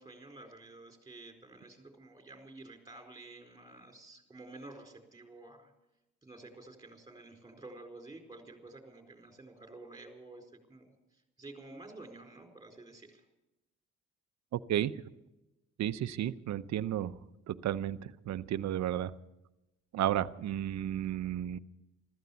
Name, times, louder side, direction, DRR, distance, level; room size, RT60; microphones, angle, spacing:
voice 1, 0.0-5.7 6.2-13.2, right 2 dB, 10° right, 3 dB, 4.4 m, -51 dB
voice 2, 14.5-14.9 15.8-17.2 17.5-19.1 19.9-21.6, right 11 dB, 65° right, 13 dB, 0.8 m, -33 dB
15.0 x 14.0 x 7.0 m, 0.96 s
cardioid pair, 90°, 30 cm